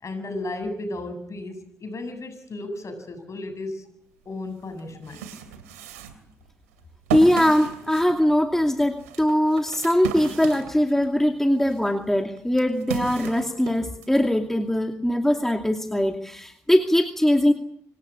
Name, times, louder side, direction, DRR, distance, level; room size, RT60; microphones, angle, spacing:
voice 1, 0.0-3.9 4.2-5.3, left 2 dB, 40° left, 9 dB, 8.0 m, -34 dB
sound 1, 4.2-4.3 4.8-11.2 11.6-14.2, right 7 dB, 85° right, 2.9 m, -35 dB
voice 2, 7.1-17.5, left 1 dB, 5° left, 4 dB, 2.5 m, -21 dB
26.5 x 19.0 x 8.8 m, 0.70 s
hypercardioid pair, 50°, 8 cm